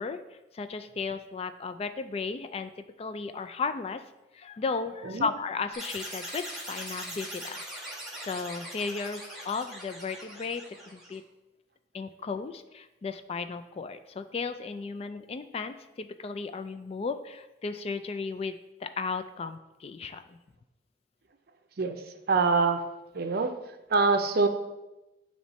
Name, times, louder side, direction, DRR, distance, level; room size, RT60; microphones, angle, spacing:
voice 1, 0.0-4.0 4.3-7.6 8.2-11.2 11.9-20.4, left 4 dB, 35° left, 10 dB, 0.3 m, -35 dB
sound 1, 5.7-11.2, right 1 dB, ahead, 1.2 m, -41 dB
voice 2, 22.3-22.8 23.1-23.5 23.9-24.5, right 4 dB, 60° right, 7 dB, 0.5 m, -24 dB
8.7 x 3.1 x 4.0 m, 1.0 s
head